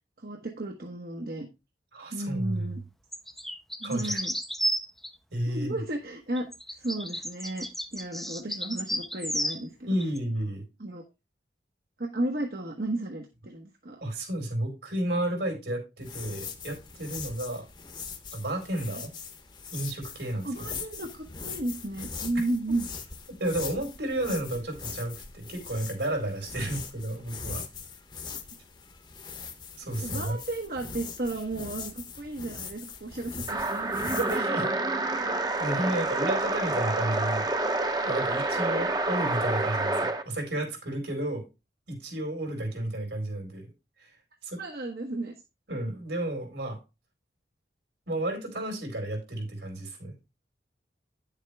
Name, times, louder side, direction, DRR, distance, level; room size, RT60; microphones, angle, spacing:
voice 1, 0.2-1.5 2.1-2.8 3.8-4.3 5.5-6.5 6.8-7.7 7.9-9.9 10.8-11.0 12.0-14.0 18.9-19.0 20.4-22.9 28.3-28.4 30.0-33.8 44.6-45.3, right 2 dB, 55° right, 1.2 m, -33 dB
voice 2, 1.9-2.8 3.8-4.2 5.3-5.7 9.9-10.6 14.0-17.7 18.3-19.1 19.7-20.7 22.3-22.4 23.3-27.6 29.8-30.4 34.1-34.7 35.6-37.5 38.0-41.5 41.9-43.7 44.0-44.1 44.4-44.6 45.7-46.8 48.1-50.1, right 1 dB, 75° right, 4.3 m, -32 dB
sound 1, 3.1-5.1 6.4-9.6 10.0-10.2, equal, ahead, 0.6 m, -32 dB
sound 2, 16.0-34.4, left 5 dB, 25° left, 1.0 m, -41 dB
sound 3, 33.5-40.2, right 2 dB, 20° right, 0.9 m, -28 dB
9.8 x 7.3 x 3.4 m
head